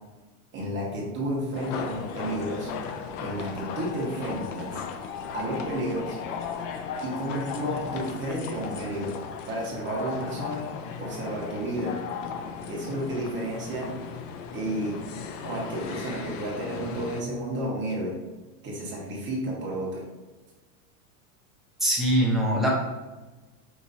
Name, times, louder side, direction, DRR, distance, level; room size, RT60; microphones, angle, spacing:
voice 1, 0.5-2.7 3.2-4.8 5.3-6.2 7.0-9.2 9.5-10.7 11.0-12.0 12.7-13.9 14.5-15.0 15.4-18.2 18.6-20.0, right 1 dB, 25° right, -4 dB, 1.2 m, -31 dB
sound 1, 1.5-17.2, left 6 dB, 55° left, 0.5 m, -36 dB
voice 2, 21.8-22.7, equal, ahead, -5 dB, 0.6 m, -22 dB
5.0 x 3.0 x 2.7 m, 1.2 s
supercardioid pair, 140°, 45 cm